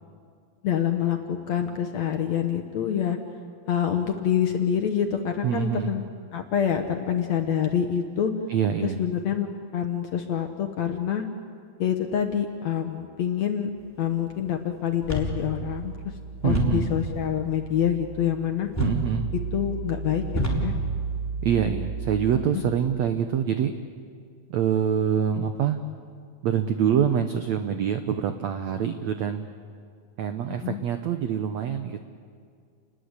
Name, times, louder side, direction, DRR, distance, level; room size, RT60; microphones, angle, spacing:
voice 1, 0.6-3.2 3.7-6.0 6.3-8.3 8.8-9.5 9.7-11.2 11.8-13.7 14.0-15.9 16.4-18.7 19.5-20.7 22.5-22.6 30.6-30.8, left 9 dB, 65° left, 5 dB, 1.8 m, -26 dB
voice 2, 5.4-5.9 8.5-9.0 16.4-16.9 18.8-19.3 21.4-23.7 24.5-25.8 26.4-29.5 30.2-32.0, right 8 dB, 85° right, 8 dB, 1.5 m, -25 dB
sound 1, 15.0-22.4, right 1 dB, 5° left, 3.3 m, -30 dB
30.0 x 20.5 x 8.1 m, 2.2 s
omnidirectional pair, 4.5 m